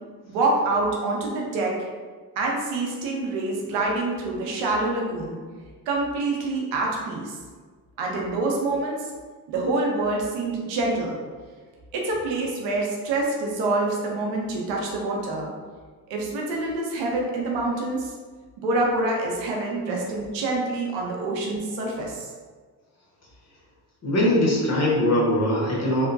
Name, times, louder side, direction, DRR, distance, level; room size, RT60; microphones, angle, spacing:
voice 1, 0.3-1.9 2.4-5.4 5.9-7.3 8.0-9.0 9.5-11.2 11.9-15.5 16.1-18.1 18.6-22.3, right 2 dB, 80° right, -1 dB, 0.7 m, -26 dB
voice 2, 24.0-26.1, left 1 dB, 35° left, -4 dB, 0.9 m, -21 dB
2.5 x 2.1 x 2.5 m, 1.5 s
hypercardioid pair, 55°, 43 cm